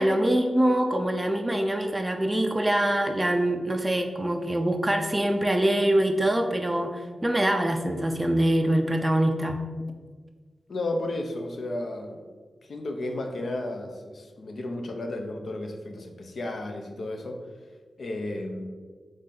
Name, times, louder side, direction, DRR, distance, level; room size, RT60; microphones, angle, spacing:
voice 1, 0.0-9.6, right 1 dB, 15° right, 4 dB, 0.4 m, -24 dB
voice 2, 10.7-12.3 12.6-17.6 18.0-18.7, left 2 dB, 65° left, 4 dB, 0.6 m, -33 dB
4.0 x 3.2 x 3.8 m, 1.5 s
wide cardioid pair, 100°, 0 cm